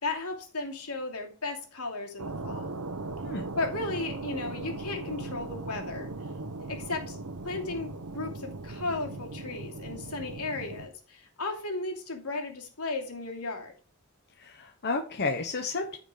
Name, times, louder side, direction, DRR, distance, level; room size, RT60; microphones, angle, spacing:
voice 1, 0.0-2.7 3.6-6.1 6.7-7.2 7.4-13.7, left 3 dB, 75° left, 2 dB, 2.8 m, -35 dB
sound 1, 2.2-10.9, right 3 dB, 75° right, 0.9 m, -38 dB
voice 2, 14.4-16.0, left 3 dB, 50° left, 4 dB, 1.1 m, -32 dB
14.0 x 5.1 x 4.9 m, 0.41 s
head